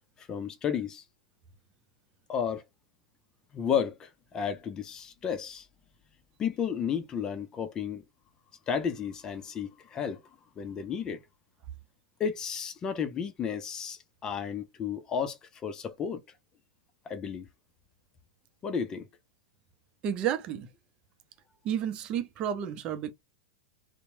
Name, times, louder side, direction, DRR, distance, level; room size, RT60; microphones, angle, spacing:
voice 1, 0.2-1.0 2.3-2.6 3.5-5.7 6.4-8.0 8.7-10.2 10.6-11.2 12.2-16.2 17.1-17.5 18.6-19.1, left 7 dB, 25° left, 0.5 m, -32 dB
voice 2, 20.0-20.7 21.6-23.1, right 9 dB, 35° right, 0.6 m, -31 dB
2.9 x 2.1 x 2.7 m
hypercardioid pair, 100°, 3 cm